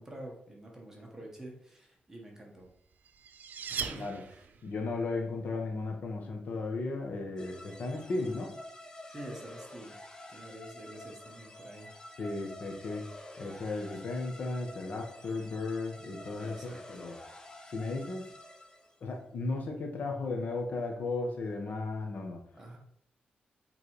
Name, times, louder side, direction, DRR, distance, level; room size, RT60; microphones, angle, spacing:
voice 1, 0.0-2.7 3.7-4.4 8.0-8.3 9.1-10.0 10.3-11.9 16.4-16.8 22.5-22.8, right 1 dB, 15° right, -1 dB, 1.6 m, -47 dB
sound 1, 2.7-4.8, right 6 dB, 65° right, 0.6 m, -39 dB
voice 2, 4.6-8.5 12.2-13.1 13.4-17.1 17.7-18.3 19.0-22.4, left 3 dB, 55° left, 2 dB, 1.5 m, -35 dB
sound 2, 7.4-19.0, left 1 dB, 20° left, 0.9 m, -49 dB
8.0 x 3.9 x 4.9 m, 0.71 s
wide cardioid pair, 160°, 3 cm